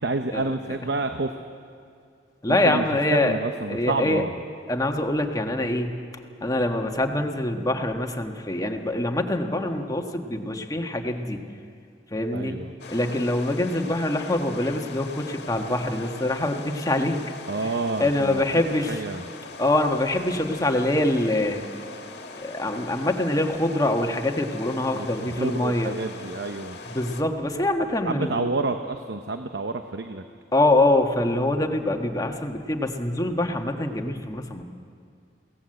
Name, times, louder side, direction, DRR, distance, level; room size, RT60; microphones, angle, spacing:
voice 1, 0.0-1.3 2.5-2.8 3.1-4.3 12.3-12.7 17.5-18.4 18.9-19.3 24.9-26.8 28.0-30.2, right 3 dB, 70° right, 7 dB, 0.9 m, -29 dB
voice 2, 2.4-3.3 3.7-4.2 4.7-6.0 6.4-11.4 12.1-12.6 12.9-17.2 17.6-17.7 18.0-19.0 19.6-21.6 22.4-25.9 26.9-28.5 30.5-34.6, left 1 dB, 20° left, 4 dB, 1.4 m, -24 dB
sound 1, 12.8-27.2, left 3 dB, 65° left, 1.7 m, -41 dB
22.5 x 17.5 x 7.8 m, 2.3 s
head